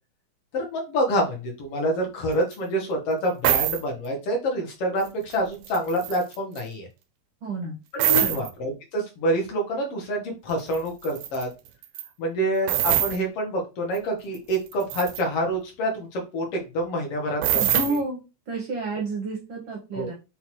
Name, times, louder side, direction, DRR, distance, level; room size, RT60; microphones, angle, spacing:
voice 1, 0.5-6.9 7.9-11.5 12.2-17.8 19.9-20.1, right 1 dB, 60° left, 1 dB, 1.9 m, -27 dB
sound 1, 2.5-2.6 3.4-3.8 5.0-5.3 5.6-6.6 8.0-8.5 10.7-10.8 11.0-11.4 11.8-12.1 12.7-13.2 13.9-14.0 14.3-15.2 17.4-18.0, right 12 dB, 85° right, 2.0 m, -24 dB
voice 2, 7.4-7.8 8.2-8.4 17.5-18.2 18.5-20.1, right 2 dB, 70° right, -1 dB, 1.2 m, -30 dB
5.9 x 2.6 x 3.0 m, 0.29 s
omnidirectional pair, 3.3 m